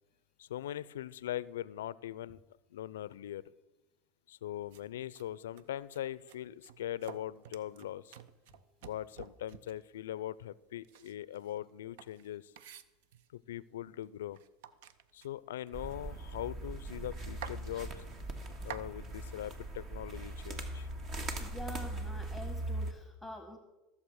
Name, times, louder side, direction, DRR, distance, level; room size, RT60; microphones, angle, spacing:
voice 1, 0.4-2.4 2.7-3.4 4.3-8.2 8.8-12.5 13.5-14.4 15.1-17.9 18.6-20.9, left 12 dB, 85° left, 20 dB, 0.4 m, -41 dB
sound 1, 4.7-4.8 5.1-5.2 5.6-6.0 6.3-9.9 10.8-13.4 14.0-14.1 14.3-16.4 16.7-16.8 17.1-17.6 18.2-18.9, right 9 dB, 75° right, 0.6 m, -50 dB
sound 2, 15.7-22.9, right 1 dB, 45° right, 1.8 m, -40 dB
voice 2, 21.4-23.6, left 1 dB, ahead, 6 dB, 1.4 m, -46 dB
14.5 x 7.2 x 6.4 m, 1.1 s
hypercardioid pair, 90°, 0 cm